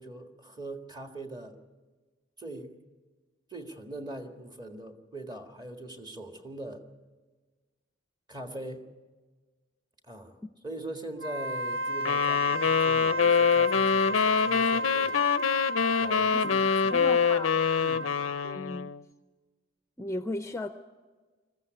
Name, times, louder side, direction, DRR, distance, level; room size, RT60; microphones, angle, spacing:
voice 1, 0.0-1.6 2.4-2.7 3.5-6.8 8.3-8.9 10.0-10.4 10.6-15.2 16.0-17.1 17.8-18.1, right 1 dB, 20° right, 5 dB, 1.8 m, -42 dB
Wind instrument woodwind instrument, 11.1-18.6, right 1 dB, 75° right, 0.7 m, -33 dB
sound 1, 12.1-19.0, left 6 dB, 90° left, 0.5 m, -25 dB
voice 2, 16.9-17.5 18.4-18.9 20.0-20.7, left 1 dB, 15° left, 9 dB, 0.6 m, -35 dB
21.0 x 15.0 x 9.4 m, 1.4 s
head